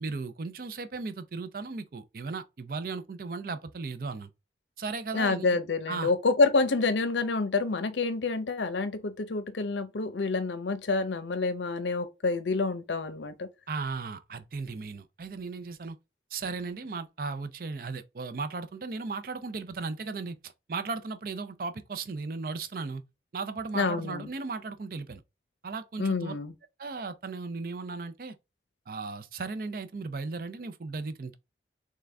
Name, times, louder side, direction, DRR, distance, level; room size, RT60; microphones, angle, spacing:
voice 1, 0.0-4.3 4.8-5.6 5.9-6.1 13.7-16.0 16.3-23.0 23.3-25.2 25.6-26.3 26.8-28.3 28.9-31.4, right 4 dB, 50° right, 0.5 m, -36 dB
voice 2, 5.1-13.5 23.7-24.3 26.0-26.5, left 3 dB, 85° left, 0.7 m, -28 dB
3.7 x 3.3 x 3.3 m
head